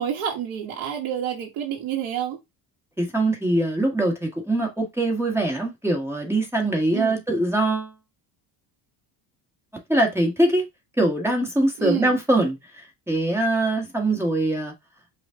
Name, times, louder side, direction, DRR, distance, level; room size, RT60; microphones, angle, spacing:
voice 1, 0.0-2.4 6.9-7.2 11.8-12.2, right 9 dB, 85° right, 1.5 m, -28 dB
voice 2, 3.0-7.9 9.9-10.6 11.0-12.6 13.1-14.7, right 1 dB, 5° right, 1.6 m, -22 dB
5.1 x 2.6 x 3.6 m
cardioid pair, 100°, 48 cm